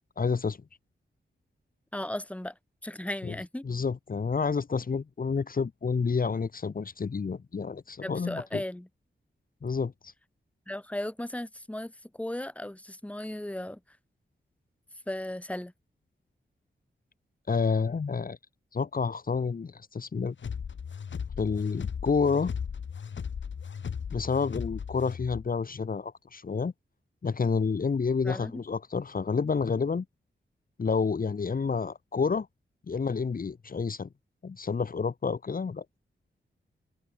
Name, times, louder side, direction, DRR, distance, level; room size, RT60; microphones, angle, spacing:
voice 1, 0.2-0.6 3.2-3.3 3.6-8.6 9.6-10.1 17.5-18.4 18.7-20.4 21.4-22.5 24.1-26.7 27.2-30.1 30.8-32.5 32.9-34.1 34.4-35.8, left 5 dB, 45° left, 1.9 m, -29 dB
voice 2, 1.9-2.5 2.8-3.7 8.0-8.9 10.7-11.9 12.2-13.8 15.1-15.7 28.2-28.6, left 1 dB, 5° left, 2.8 m, -36 dB
sound 1, 20.4-25.5, left 7 dB, 70° left, 2.3 m, -36 dB
wide cardioid pair, 145°, 20 cm